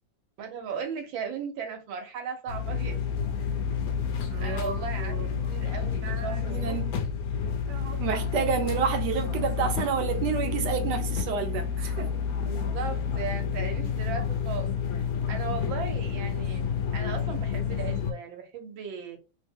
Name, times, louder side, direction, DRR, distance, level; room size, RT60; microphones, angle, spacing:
voice 1, 0.4-3.0 4.4-5.1 5.5-6.8 12.4-14.8 15.3-16.7 16.9-19.2, right 6 dB, 85° right, 1.6 m, -36 dB
sound 1, 2.5-18.1, left 6 dB, 70° left, 0.9 m, -30 dB
voice 2, 4.3-5.4 6.0-6.9 7.7-12.1, right 7 dB, 70° right, 1.1 m, -30 dB
3.4 x 2.1 x 3.5 m
omnidirectional pair, 2.1 m